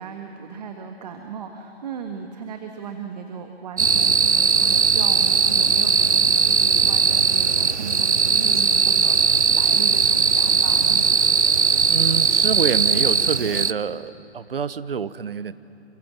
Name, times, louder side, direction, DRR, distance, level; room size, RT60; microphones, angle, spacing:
voice 1, 0.0-11.1, right 5 dB, 35° right, 5 dB, 1.6 m, -36 dB
sound 1, 3.8-13.7, right 5 dB, 80° right, 0.8 m, -19 dB
voice 2, 11.9-15.5, right 6 dB, 55° right, 15 dB, 1.0 m, -27 dB
28.5 x 24.5 x 7.5 m, 2.7 s
figure-of-eight pair, 135°, 34 cm